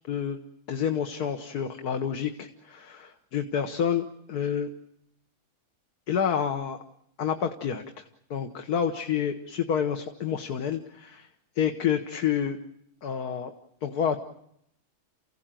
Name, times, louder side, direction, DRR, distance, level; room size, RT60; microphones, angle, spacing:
voice 1, 0.1-0.4 0.7-4.7 6.1-6.8 7.2-8.0 8.3-11.3 11.6-12.6 13.0-13.5 13.8-14.2, left 8 dB, 85° left, 6 dB, 1.7 m, -28 dB
29.0 x 16.5 x 9.0 m, 0.78 s
omnidirectional pair, 1.6 m